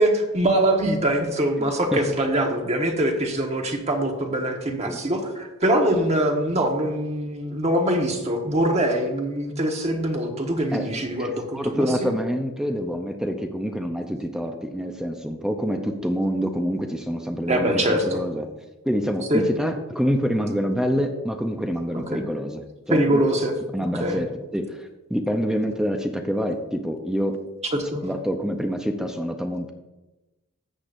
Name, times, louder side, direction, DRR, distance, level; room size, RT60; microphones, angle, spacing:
voice 1, 0.0-12.1 17.5-18.2 19.3-19.4 21.9-22.2 22.9-23.5 24.0-24.2 27.9-28.0, right 1 dB, 30° right, 2 dB, 1.3 m, -23 dB
voice 2, 1.6-2.0 4.8-5.0 10.7-10.9 11.2-18.5 18.8-22.6 22.9-23.2 23.7-27.4 28.0-29.7, equal, 5° right, 4 dB, 0.6 m, -26 dB
13.5 x 8.4 x 2.6 m, 1.1 s
head